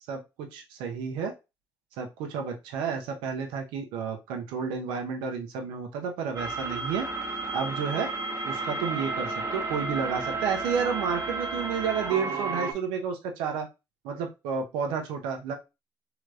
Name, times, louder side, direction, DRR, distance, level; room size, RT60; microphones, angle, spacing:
voice 1, 0.1-1.3 2.0-7.1 7.5-8.1 8.4-13.7 14.0-15.5, right 6 dB, 90° right, 3 dB, 0.7 m, -31 dB
sound 1, 6.4-12.7, right 3 dB, 45° right, 0.9 m, -32 dB
3.3 x 2.9 x 2.3 m, 0.25 s
supercardioid pair, 65°, 8 cm